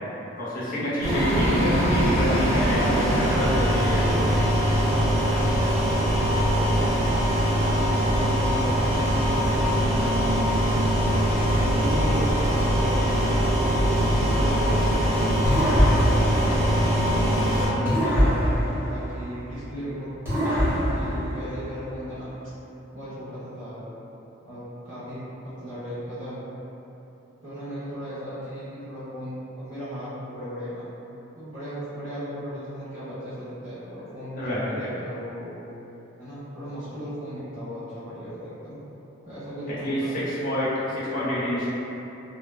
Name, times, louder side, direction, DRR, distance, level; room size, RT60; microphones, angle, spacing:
voice 1, 0.4-4.1 14.3-14.6 17.7-18.0 34.4-34.9 39.8-41.7, equal, 40° left, -9 dB, 0.7 m, -28 dB
sound 1, 1.0-17.7, equal, 35° right, 1.1 m, -22 dB
voice 2, 2.5-6.9 7.8-13.4 13.9-16.8 17.4-20.7 20.9-22.3 22.9-23.8 24.4-26.4 27.4-30.8 31.3-35.5 36.2-38.8 39.2-40.3, equal, 70° right, -14 dB, 1.3 m, -36 dB
sound 2, 15.5-17.3 17.9-19.7 20.2-22.0, equal, 10° right, 1.0 m, -24 dB
2.8 x 2.2 x 2.2 m, 3.0 s
head